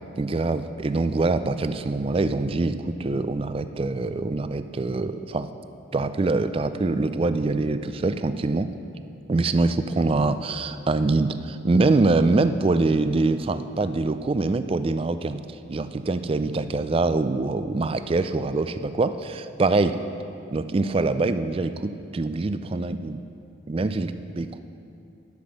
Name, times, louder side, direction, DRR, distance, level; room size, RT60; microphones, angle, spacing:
voice 1, 0.2-5.5 5.9-8.7 9.3-15.4 15.7-20.0 20.5-23.2 23.7-24.6, right 3 dB, 30° right, 11 dB, 0.3 m, -24 dB
11.5 x 6.1 x 6.5 m, 2.5 s
head